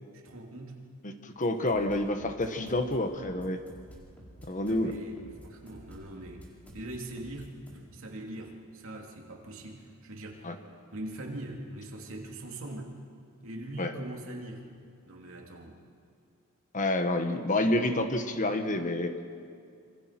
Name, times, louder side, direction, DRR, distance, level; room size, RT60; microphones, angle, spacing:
voice 1, 0.1-0.8 4.6-7.5 7.7-10.5 10.9-12.9 13.4-14.7 15.1-15.8, right 1 dB, 65° right, 1 dB, 3.1 m, -42 dB
voice 2, 1.0-3.6 4.5-4.9 10.4-10.6 13.8-13.9 16.7-19.1, left 1 dB, 35° left, 7 dB, 1.4 m, -28 dB
sound 1, 1.4-7.8, equal, 5° left, 4.5 m, -51 dB
26.5 x 25.5 x 6.1 m, 2.3 s
head